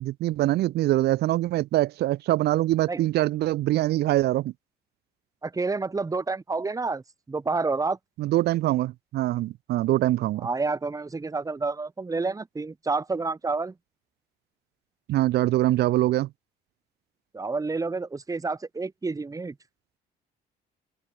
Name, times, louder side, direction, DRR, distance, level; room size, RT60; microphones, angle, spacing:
voice 1, 0.0-4.5 8.2-10.5 15.1-16.3, right 15 dB, 75° right, 3.5 m, -24 dB
voice 2, 5.4-8.0 10.4-13.7 17.3-19.5, right 3 dB, 20° right, 4.7 m, -29 dB
open air
cardioid pair, 110°, 17 cm